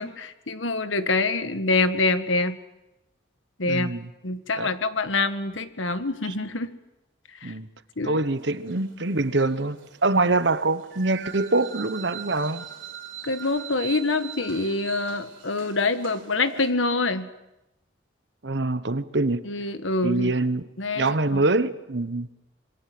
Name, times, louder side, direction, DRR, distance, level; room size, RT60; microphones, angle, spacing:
voice 1, 0.0-2.6 3.6-3.9 4.2-6.7 7.4-7.5 8.0-8.2 13.2-17.3 19.4-20.3 20.8-21.4, left 3 dB, 85° left, 1.5 m, -26 dB
voice 2, 3.6-4.1 4.6-4.7 6.2-6.3 7.4-7.7 8.0-12.6 18.4-19.4 20.0-20.7 20.9-22.3, right 2 dB, 65° right, 1.1 m, -24 dB
sound 1, 8.2-16.7, right 8 dB, 85° right, 4.1 m, -42 dB
26.0 x 22.5 x 7.8 m
head